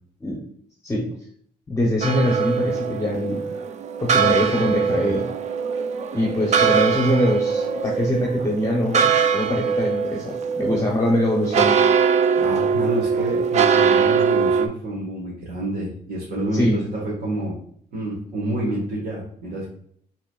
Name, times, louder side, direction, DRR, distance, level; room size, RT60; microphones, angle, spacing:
voice 1, 1.7-3.4 4.0-5.3 6.1-11.9 16.5-16.8, left 1 dB, 20° left, -1 dB, 0.7 m, -23 dB
sound 1, 2.0-14.7, right 6 dB, 45° right, 0.4 m, -22 dB
voice 2, 12.3-17.6 17.9-19.7, right 1 dB, 65° right, -5 dB, 1.4 m, -28 dB
6.0 x 3.1 x 2.3 m, 0.64 s
cardioid pair, 125°, 16 cm